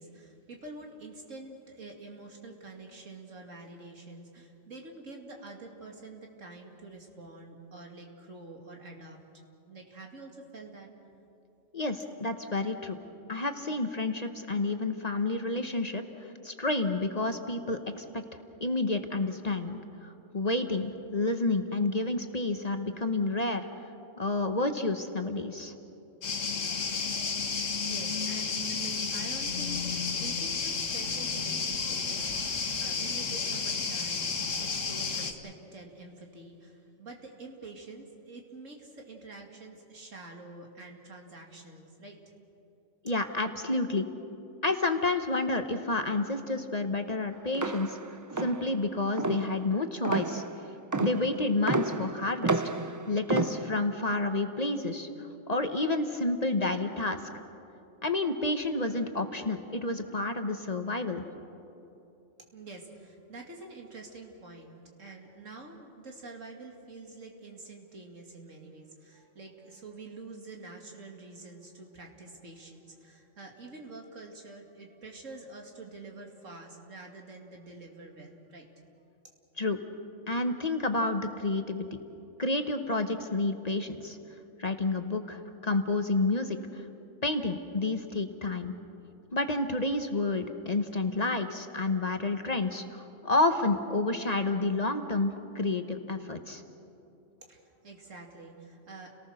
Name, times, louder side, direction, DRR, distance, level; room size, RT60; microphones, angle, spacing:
voice 1, 0.0-9.2 9.7-10.9 27.5-42.2 62.5-78.7 97.4-99.1, right 3 dB, 85° right, 1 dB, 2.8 m, -47 dB
voice 2, 11.7-13.0 13.3-18.2 18.6-23.7 24.2-25.7 43.0-44.1 44.6-48.0 48.4-50.4 51.0-52.6 53.1-55.1 55.5-57.2 58.0-61.2 79.6-79.8 80.3-81.9 82.4-84.2 84.6-86.8 87.2-88.7 89.3-96.6, left 2 dB, 35° left, 7 dB, 1.1 m, -30 dB
sound 1, 26.2-35.3, left 5 dB, 80° left, 1.8 m, -32 dB
sound 2, 47.5-54.0, right 3 dB, 30° right, 0.3 m, -32 dB
29.5 x 18.5 x 6.5 m, 2.9 s
omnidirectional pair, 1.3 m